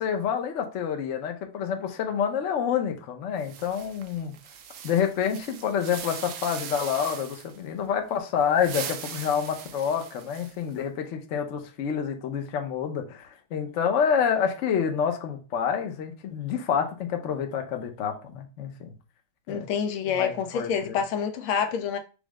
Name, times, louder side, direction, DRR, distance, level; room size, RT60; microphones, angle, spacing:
voice 1, 0.0-4.3 4.8-18.9 19.5-19.7 20.1-21.0, left 7 dB, 65° left, 0.7 m, -28 dB
sound 1, 3.4-7.6 8.4-10.7, right 8 dB, 70° right, 1.2 m, -40 dB
voice 2, 19.5-22.0, left 7 dB, 90° left, 1.6 m, -27 dB
5.3 x 2.1 x 4.7 m
omnidirectional pair, 2.3 m